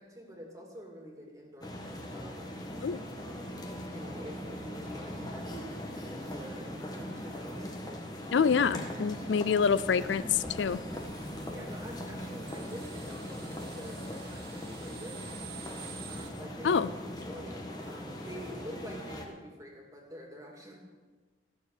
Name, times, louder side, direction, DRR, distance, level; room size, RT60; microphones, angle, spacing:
voice 1, 0.0-2.5 3.5-7.7 11.5-15.2 15.9-16.9 17.3-20.8, equal, 20° right, 0 dB, 2.6 m, -47 dB
sound 1, 1.6-19.3, left 1 dB, 20° left, 1.5 m, -40 dB
voice 2, 8.3-10.8 16.6-16.9, left 6 dB, 75° left, 16 dB, 0.4 m, -26 dB
sound 2, 10.9-16.3, right 7 dB, 55° right, 1.0 m, -49 dB
15.5 x 7.1 x 8.4 m, 1.4 s
head